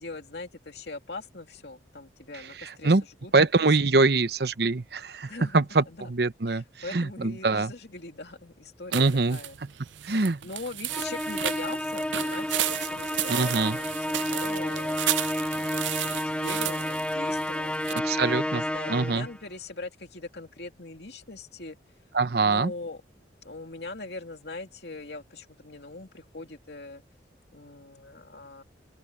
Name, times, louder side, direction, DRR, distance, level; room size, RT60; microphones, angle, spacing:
voice 1, 0.0-2.9 3.2-3.3 3.6-4.1 5.3-6.1 6.5-9.5 10.4-15.0 15.7-17.8 18.5-21.8 22.4-23.0 23.4-27.0 27.5-28.6, left 2 dB, 65° left, 2.9 m, -41 dB
voice 2, 2.6-3.0 3.3-6.6 6.9-7.7 8.9-9.4 10.0-10.4 13.3-13.8 17.9-18.6 18.9-19.3 22.1-22.7, right 3 dB, 60° right, 0.9 m, -24 dB
sound 1, 8.9-18.0, right 13 dB, 85° right, 0.5 m, -33 dB
Musical instrument, 10.9-19.4, left 1 dB, 5° left, 0.3 m, -30 dB
open air
head